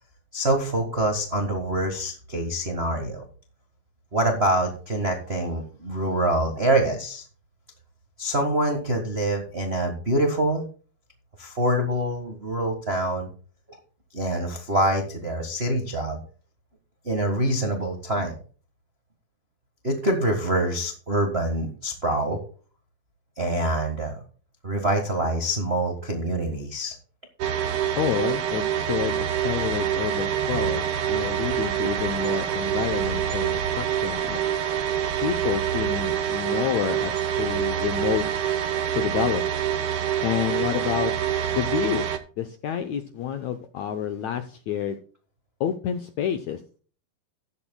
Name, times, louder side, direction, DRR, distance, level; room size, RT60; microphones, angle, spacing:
voice 1, 0.3-3.2 4.1-7.2 8.2-10.6 11.4-13.3 14.1-16.2 17.0-18.4 19.8-22.4 23.4-24.2 24.6-26.9, right 1 dB, 55° right, 3 dB, 0.7 m, -25 dB
sound 1, 27.4-42.2, right 9 dB, 80° right, 1.2 m, -26 dB
voice 2, 28.0-34.4 35.2-38.3 38.9-39.4 40.2-41.1 41.5-42.1 42.4-45.0 45.6-46.6, left 9 dB, 75° left, 8 dB, 1.7 m, -28 dB
14.5 x 11.5 x 2.3 m, 0.40 s
omnidirectional pair, 4.2 m